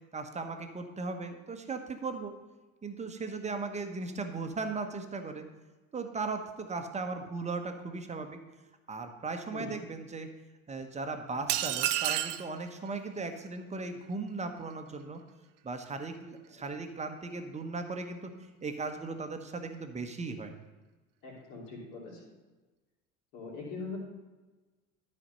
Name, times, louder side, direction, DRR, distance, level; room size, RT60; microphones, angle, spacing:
voice 1, 0.1-2.3 2.8-5.4 5.9-8.4 8.9-10.3 10.7-15.2 15.6-18.3 18.6-20.5, right 3 dB, 15° right, 6 dB, 1.0 m, -37 dB
sound 1, 11.5-12.5, right 13 dB, 60° right, 0.6 m, -29 dB
voice 2, 21.2-22.2 23.3-24.0, left 4 dB, 60° left, -3 dB, 3.4 m, -42 dB
13.0 x 4.3 x 5.4 m, 1.2 s
figure-of-eight pair, 70°, 41 cm